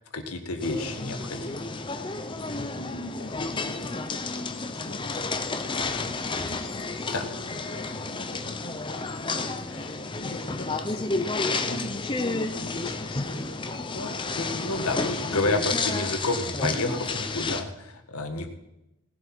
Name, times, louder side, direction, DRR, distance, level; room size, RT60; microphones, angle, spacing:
voice 1, 0.1-1.7 7.1-7.3 14.4-18.5, left 2 dB, 85° left, 6 dB, 1.8 m, -30 dB
sound 1, 0.6-17.6, left 3 dB, 20° left, 0.7 m, -31 dB
voice 2, 2.7-5.2 5.5-15.5, left 2 dB, 70° left, 5 dB, 1.9 m, -43 dB
18.0 x 7.7 x 6.1 m, 0.90 s
head